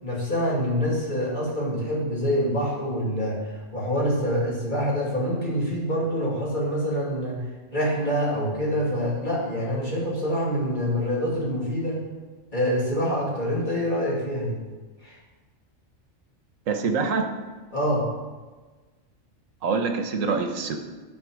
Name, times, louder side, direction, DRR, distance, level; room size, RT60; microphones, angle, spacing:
voice 1, 0.0-7.4 7.7-12.0 12.5-14.6 15.0-15.2 17.7-18.1, equal, 40° left, -5 dB, 2.6 m, -26 dB
voice 2, 16.7-17.3 19.6-20.8, right 4 dB, 85° right, 5 dB, 1.3 m, -25 dB
12.0 x 4.1 x 6.3 m, 1.3 s
omnidirectional pair, 1.3 m